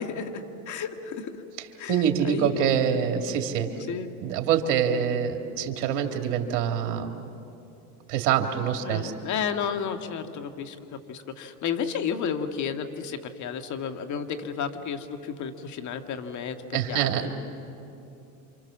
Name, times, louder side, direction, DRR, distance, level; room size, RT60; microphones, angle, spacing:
voice 1, 0.0-1.4 1.8-3.0 3.9-4.1 4.7-5.0 8.8-10.8 11.1-17.3, left 7 dB, 40° left, 7 dB, 1.9 m, -32 dB
voice 2, 1.9-3.7 4.2-7.1 8.1-9.1 16.7-17.3, right 8 dB, 60° right, 4 dB, 3.0 m, -25 dB
28.5 x 26.0 x 7.4 m, 2.8 s
supercardioid pair, 120°, 47 cm